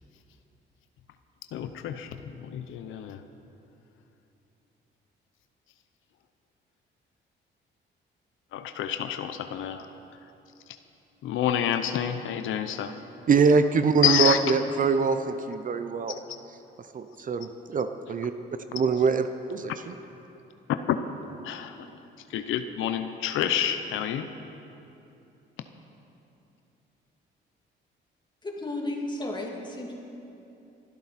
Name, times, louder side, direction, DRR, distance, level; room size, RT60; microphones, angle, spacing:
voice 1, 1.5-3.2 8.5-9.9 11.2-12.9 14.0-14.4 20.9-21.0 21.4-21.9 22.3-24.3, left 10 dB, 80° left, 9 dB, 0.7 m, -28 dB
voice 2, 13.3-16.1 16.9-18.3 18.7-19.9, right 5 dB, 40° right, 9 dB, 0.7 m, -24 dB
voice 3, 28.4-30.0, left 1 dB, 25° left, -1 dB, 2.6 m, -33 dB
22.5 x 12.0 x 4.2 m, 2.9 s
cardioid pair, 90°, 20 cm